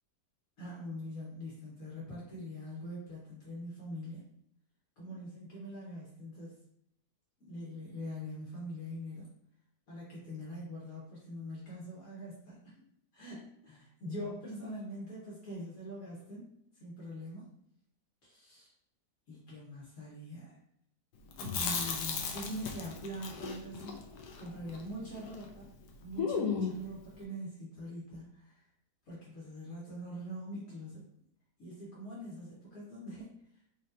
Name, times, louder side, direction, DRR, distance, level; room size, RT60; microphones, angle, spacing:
voice 1, 0.6-4.3 5.0-6.6 7.4-9.3 9.9-12.7 13.1-16.5 16.7-17.5 18.2-18.7 19.3-20.5 21.3-24.0 24.4-25.7 26.0-28.7 29.0-31.0 31.6-33.6, equal, 60° left, -6 dB, 1.6 m, -43 dB
Chewing mastication, 21.3-25.5 25.7-25.8 26.2-26.9, left 5 dB, 85° left, 1.2 m, -36 dB
4.1 x 3.1 x 2.6 m, 0.72 s
omnidirectional pair, 1.7 m